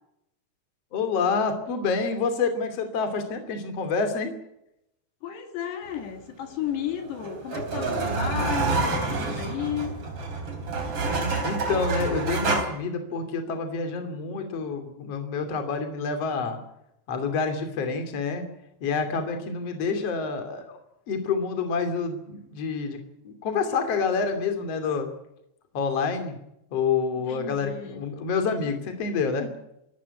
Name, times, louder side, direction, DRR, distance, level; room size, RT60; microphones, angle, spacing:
voice 1, 0.9-4.3 11.4-16.6 17.1-18.5 18.8-20.8 21.1-23.0 23.2-25.1 25.7-26.4 26.7-29.5, left 5 dB, 40° left, 7 dB, 3.5 m, -28 dB
voice 2, 5.2-10.0 27.3-28.0, left 9 dB, 70° left, 6 dB, 4.2 m, -33 dB
sound 1, 6.7-12.6, right 3 dB, 35° right, 3.9 m, -28 dB
27.0 x 13.5 x 9.8 m, 0.82 s
omnidirectional pair, 5.0 m